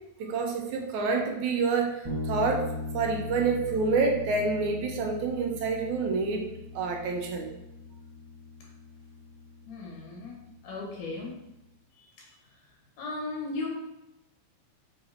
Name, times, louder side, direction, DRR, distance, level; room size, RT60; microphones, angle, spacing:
voice 1, 0.2-2.7 2.9-6.5 6.8-7.5, right 4 dB, 75° right, 1 dB, 2.2 m, -28 dB
sound 1, 2.0-11.5, left 2 dB, 30° right, 0.4 m, -40 dB
voice 2, 9.7-11.3 13.0-13.7, left 3 dB, 80° left, -2 dB, 3.1 m, -36 dB
6.7 x 3.5 x 4.3 m, 0.90 s
omnidirectional pair, 3.6 m